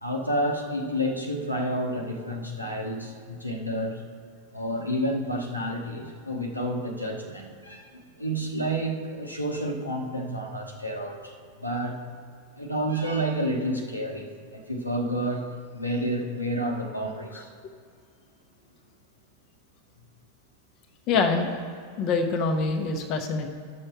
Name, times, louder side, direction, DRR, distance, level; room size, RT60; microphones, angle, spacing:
voice 1, 0.0-4.0 4.5-12.0 12.5-15.5 15.7-17.5, equal, 90° left, 1 dB, 1.1 m, -30 dB
voice 2, 21.1-21.5 22.0-23.5, left 4 dB, 40° left, 3 dB, 0.9 m, -25 dB
11.5 x 6.5 x 4.5 m, 2.2 s
figure-of-eight pair, 90°, 0 cm